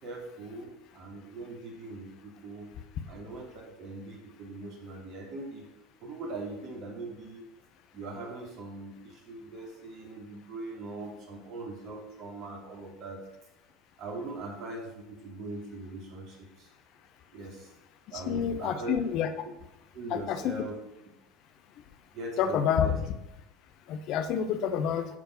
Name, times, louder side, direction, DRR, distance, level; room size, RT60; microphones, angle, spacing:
voice 1, 0.0-2.7 3.1-5.7 6.0-7.5 7.9-13.2 14.0-16.7 17.3-17.7 18.1-18.9 19.9-20.8 22.1-23.0, right 2 dB, 55° right, 0 dB, 2.7 m, -41 dB
voice 2, 18.1-19.3 20.1-20.5 22.4-23.0 23.9-25.1, left 8 dB, 55° left, 9 dB, 1.0 m, -28 dB
10.5 x 4.5 x 6.0 m, 0.90 s
hypercardioid pair, 70°, 0 cm